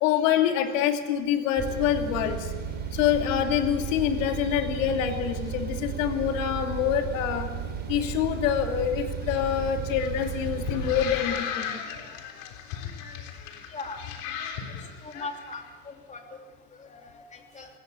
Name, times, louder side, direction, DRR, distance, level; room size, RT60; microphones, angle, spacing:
voice 1, 0.0-2.5 2.9-7.5 7.9-11.8, left 9 dB, 80° left, 4 dB, 2.6 m, -26 dB
sound 1, 1.6-11.1, right 7 dB, 25° right, 5.1 m, -34 dB
sound 2, 9.2-15.5, left 8 dB, 65° left, 3.7 m, -36 dB
voice 2, 13.7-14.0 15.0-16.2 16.7-17.7, left 3 dB, 20° left, 3 dB, 3.3 m, -40 dB
20.5 x 18.0 x 8.3 m, 1.3 s
supercardioid pair, 130°, 38 cm